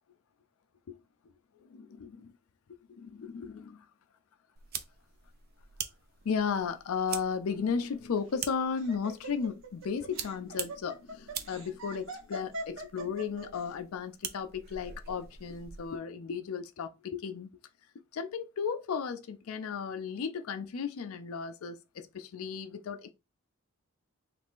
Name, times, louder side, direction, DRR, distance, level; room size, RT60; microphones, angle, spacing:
voice 1, 1.6-2.3 3.0-3.8 6.2-17.5 18.1-23.1, left 6 dB, 80° left, 0.4 m, -35 dB
sound 1, 4.6-16.0, right 8 dB, 45° right, 0.4 m, -44 dB
Laughter, 8.2-13.6, right 2 dB, 60° right, 0.8 m, -42 dB
3.2 x 2.5 x 3.5 m
head